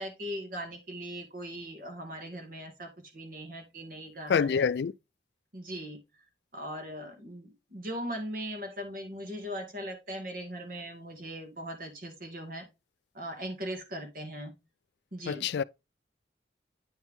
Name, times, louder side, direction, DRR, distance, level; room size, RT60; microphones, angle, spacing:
voice 1, 0.0-4.7 5.5-6.0 6.5-12.7 13.1-14.5 15.1-15.5, equal, 50° right, 2.1 m, -39 dB
voice 2, 4.3-4.9 15.3-15.6, left 6 dB, 65° left, 0.3 m, -26 dB
9.1 x 4.5 x 3.6 m
head